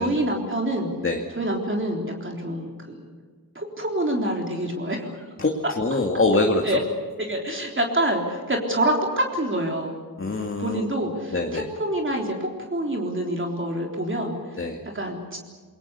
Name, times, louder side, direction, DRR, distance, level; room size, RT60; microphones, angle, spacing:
voice 1, 0.0-0.9 1.4-3.0 3.6-5.3 6.6-6.8 7.2-10.0 10.6-14.7 14.9-15.4, right 1 dB, 35° right, 1 dB, 3.6 m, -26 dB
voice 2, 5.4-6.6 10.2-10.8 11.3-11.7 14.6-14.8, left 2 dB, 35° left, 2 dB, 2.2 m, -24 dB
28.0 x 22.5 x 6.9 m, 1.6 s
wide cardioid pair, 120°, 36 cm